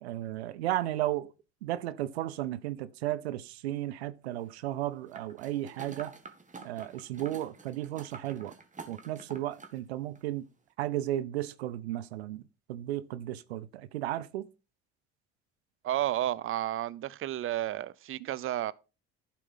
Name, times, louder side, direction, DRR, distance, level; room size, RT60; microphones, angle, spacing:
voice 1, 0.0-1.3 1.6-6.1 6.6-8.5 8.9-10.4 10.8-12.4 12.7-14.5, right 14 dB, 90° right, 0.5 m, -34 dB
sound 1, 5.1-9.8 10.2-10.3, right 4 dB, 25° right, 1.8 m, -48 dB
voice 2, 15.8-18.7, right 13 dB, 40° right, 0.6 m, -32 dB
11.5 x 4.5 x 5.5 m
hypercardioid pair, 65°, 31 cm